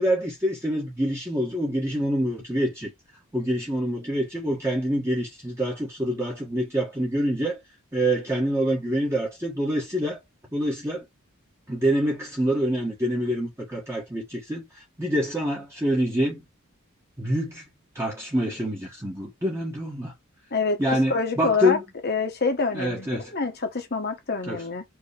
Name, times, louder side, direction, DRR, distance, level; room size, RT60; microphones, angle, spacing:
voice 1, 0.0-2.9 3.3-7.6 7.9-10.2 10.5-11.0 11.7-16.4 17.2-17.6 17.9-20.1 20.8-21.8 22.7-23.3 24.5-24.6, equal, 10° right, 1.3 m, -26 dB
voice 2, 21.1-21.8 22.0-24.8, left 4 dB, 50° left, 1.2 m, -26 dB
4.8 x 3.1 x 3.3 m
head